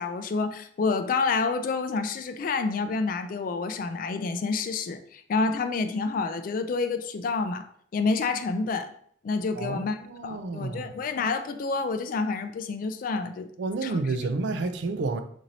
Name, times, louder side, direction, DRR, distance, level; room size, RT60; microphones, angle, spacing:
voice 1, 0.0-7.6 7.9-8.9 9.2-10.0 10.2-13.5 13.8-14.0, left 4 dB, 50° left, 0.3 m, -28 dB
voice 2, 9.6-10.9 13.6-15.2, right 3 dB, 70° right, 0.4 m, -30 dB
3.0 x 2.6 x 3.9 m
head